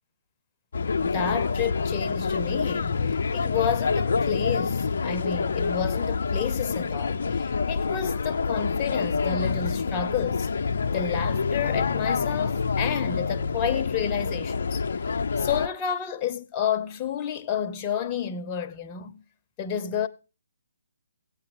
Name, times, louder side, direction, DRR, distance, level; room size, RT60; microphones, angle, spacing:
sound 1, 0.7-15.7, left 5 dB, 60° left, 0.7 m, -27 dB
voice 1, 1.0-10.5 10.9-14.8 15.4-19.2 19.6-20.1, left 8 dB, 25° left, 1.0 m, -30 dB
16.5 x 8.7 x 5.0 m
figure-of-eight pair, 140°, 0 cm